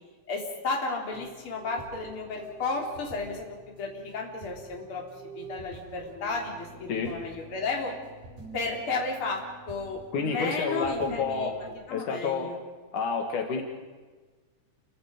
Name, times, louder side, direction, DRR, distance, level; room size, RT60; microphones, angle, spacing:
voice 1, 0.3-3.5 3.7-7.9 8.5-9.4 9.7-12.6, left 3 dB, 45° left, 0 dB, 4.1 m, -33 dB
sound 1, 1.1-11.7, right 2 dB, 85° right, 7.9 m, -48 dB
voice 2, 10.1-11.5 11.9-12.5 12.9-13.6, left 4 dB, 75° left, 2 dB, 3.5 m, -29 dB
29.5 x 24.0 x 5.2 m, 1.3 s
omnidirectional pair, 3.6 m